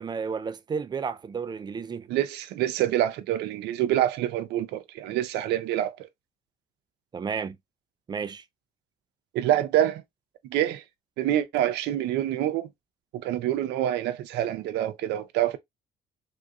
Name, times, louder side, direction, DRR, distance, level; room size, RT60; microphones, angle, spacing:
voice 1, 0.0-2.1 7.1-7.6 8.1-8.4, right 6 dB, 25° right, 0.3 m, -32 dB
voice 2, 2.1-5.9 9.3-10.0 10.5-10.8 11.2-12.7 13.1-15.6, right 12 dB, 80° right, 0.6 m, -26 dB
3.6 x 2.6 x 2.3 m
cardioid pair, 110°, 17 cm